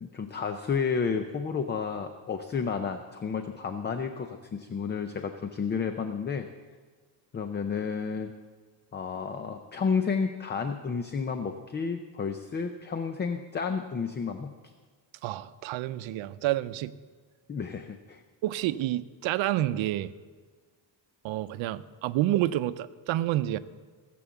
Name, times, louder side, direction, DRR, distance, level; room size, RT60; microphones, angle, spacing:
voice 1, 0.0-6.5 7.3-8.3 8.9-14.7 17.5-18.2, left 5 dB, 25° left, 8 dB, 0.5 m, -31 dB
voice 2, 15.2-17.0 18.4-20.1 21.2-23.6, right 14 dB, 85° right, 14 dB, 0.7 m, -29 dB
17.5 x 7.7 x 7.0 m, 1.5 s
cardioid pair, 165°, 46 cm